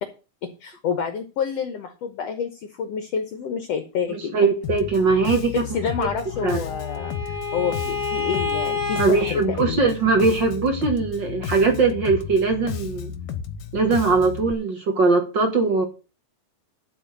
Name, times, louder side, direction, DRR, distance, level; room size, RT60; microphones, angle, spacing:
voice 1, 0.4-4.4 5.5-9.9, left 7 dB, 60° left, 8 dB, 1.8 m, -28 dB
voice 2, 4.1-5.6 6.4-6.6 9.0-13.1 13.7-15.8, right 4 dB, 45° right, 3 dB, 1.8 m, -21 dB
Bass guitar, 4.6-14.5, left 8 dB, 85° left, 2.8 m, -33 dB
Bowed string instrument, 6.0-9.1, left 4 dB, 65° right, 6.0 m, -29 dB
12.5 x 4.6 x 7.9 m, 0.33 s
omnidirectional pair, 3.8 m